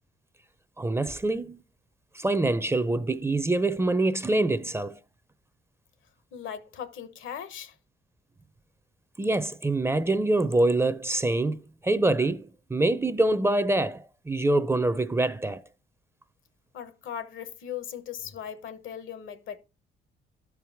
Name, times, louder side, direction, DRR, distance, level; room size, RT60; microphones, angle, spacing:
voice 1, 0.8-1.6 2.1-5.0 9.2-15.6, right 2 dB, 15° right, 0.5 m, -25 dB
voice 2, 6.3-7.7 16.7-19.6, left 9 dB, 80° left, 1.0 m, -38 dB
12.0 x 4.7 x 3.4 m
cardioid pair, 90°, 20 cm